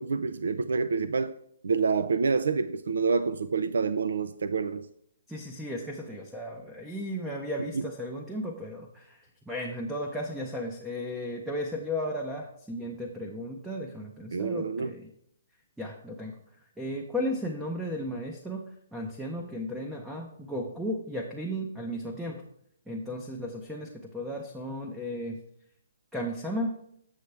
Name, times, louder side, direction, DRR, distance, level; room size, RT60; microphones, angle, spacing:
voice 1, 0.0-1.3 1.6-4.9 7.7-7.8 14.3-14.9, right 4 dB, 75° right, 0.4 m, -27 dB
voice 2, 5.3-9.2 9.5-15.1 15.8-16.4 16.8-22.4 22.9-25.4 26.1-26.8, equal, 5° right, 0.6 m, -35 dB
8.0 x 7.0 x 3.3 m
hypercardioid pair, 165°, 0 cm